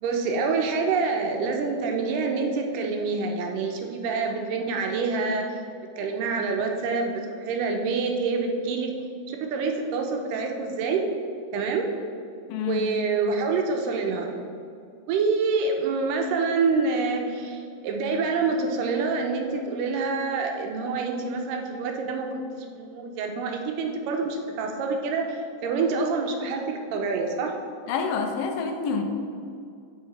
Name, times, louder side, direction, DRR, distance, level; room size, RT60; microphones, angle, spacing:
voice 1, 0.0-5.6 6.0-8.9 9.3-11.1 11.5-11.9 12.5-14.3 15.1-27.5, right 4 dB, 80° right, 3 dB, 2.2 m, -27 dB
voice 2, 12.5-12.9 27.9-29.0, left 5 dB, 90° left, 5 dB, 2.3 m, -27 dB
7.6 x 5.0 x 4.1 m, 2.3 s
omnidirectional pair, 4.0 m